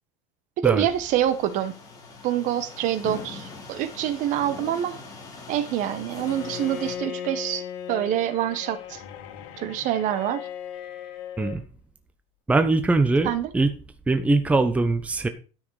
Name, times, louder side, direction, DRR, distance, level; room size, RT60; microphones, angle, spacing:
voice 1, 0.6-1.8 2.2-5.0 5.5-7.6 7.9-9.0 9.6-10.5 13.2-13.5, right 11 dB, 50° right, 13 dB, 1.2 m, -26 dB
sound 1, 0.8-6.9, left 4 dB, 20° left, 3.6 m, -41 dB
Bowed string instrument, 6.1-11.7, left 9 dB, 70° left, 2.2 m, -37 dB
voice 2, 12.5-13.7 14.1-15.3, right 3 dB, 10° right, 9 dB, 0.8 m, -21 dB
12.5 x 6.3 x 4.8 m, 0.34 s
cardioid pair, 145°, 16 cm